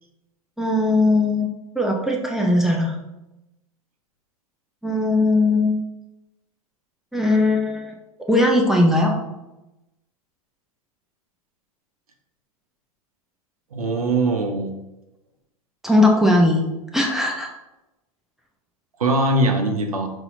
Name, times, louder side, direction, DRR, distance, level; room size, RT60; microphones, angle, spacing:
voice 1, 0.6-1.5 1.8-3.0 4.8-5.8 7.1-7.9 8.3-9.1 15.8-16.6 16.9-17.5, left 2 dB, ahead, -1 dB, 0.5 m, -19 dB
voice 2, 13.7-14.7 19.0-20.1, right 2 dB, 75° right, 4 dB, 0.7 m, -21 dB
5.6 x 2.7 x 2.6 m, 0.95 s
figure-of-eight pair, 95°, 19 cm